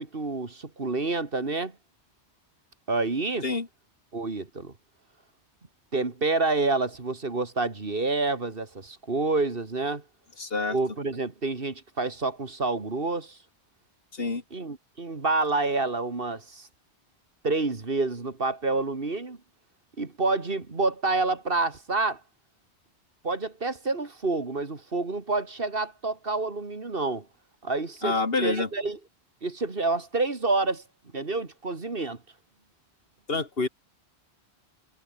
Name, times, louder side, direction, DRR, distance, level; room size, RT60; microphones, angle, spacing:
voice 1, 0.0-1.7 2.9-3.5 4.1-4.7 5.9-10.0 10.7-13.4 14.5-16.7 17.4-19.4 20.0-22.2 23.2-27.3 27.6-28.2 28.4-29.0 29.4-30.8 31.1-32.2, right 3 dB, 55° right, 2.5 m, -28 dB
voice 2, 10.4-10.8 14.1-14.4 28.0-28.7 33.3-33.7, left 3 dB, 60° left, 2.3 m, -27 dB
omnidirectional pair, 1.1 m